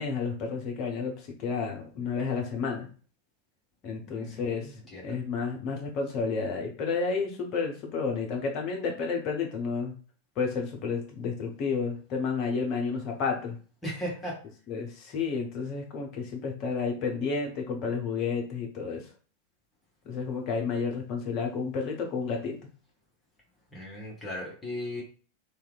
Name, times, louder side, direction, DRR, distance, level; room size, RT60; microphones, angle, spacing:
voice 1, 0.0-2.9 3.8-4.7 5.0-9.9 10.4-13.6 14.7-19.0 20.0-22.6, left 5 dB, 40° left, 1 dB, 0.8 m, -31 dB
voice 2, 4.1-5.2 13.8-14.3 23.7-25.0, equal, 15° left, -4 dB, 1.1 m, -37 dB
3.0 x 2.3 x 2.3 m, 0.39 s
figure-of-eight pair, 90°, 0 cm